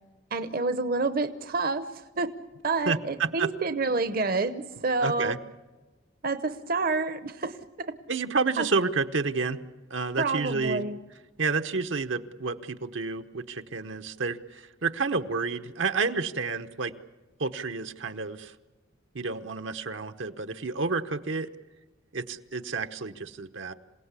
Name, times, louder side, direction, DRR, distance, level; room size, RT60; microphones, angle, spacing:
voice 1, 0.3-2.3 2.6-5.3 6.2-7.9 8.6-8.7 10.2-11.0, right 3 dB, 50° right, 11 dB, 0.8 m, -28 dB
voice 2, 2.9-3.5 5.0-5.4 8.1-9.6 9.9-10.8 11.4-16.9 17.4-18.5 19.1-21.5 22.1-23.7, right 4 dB, 75° right, 8 dB, 1.0 m, -30 dB
27.0 x 17.5 x 8.3 m, 1.2 s
head